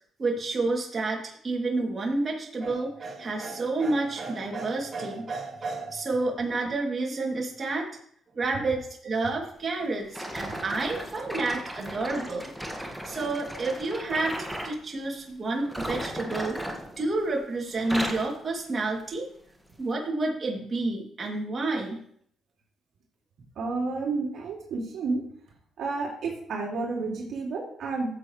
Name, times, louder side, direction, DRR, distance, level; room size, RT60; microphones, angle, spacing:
voice 1, 0.2-7.9 8.3-12.5 12.8-16.6 17.0-19.3 19.8-22.0, right 3 dB, 35° right, -2 dB, 2.8 m, -29 dB
sound 1, 10.1-14.8 15.6-17.4 17.7-18.3 19.0-19.2 19.8-19.9, equal, ahead, 1.9 m, -36 dB
voice 2, 23.6-25.2 25.8-28.1, right 3 dB, 70° right, -2 dB, 2.7 m, -30 dB
14.5 x 7.6 x 3.3 m, 0.63 s
cardioid pair, 90°, 0 cm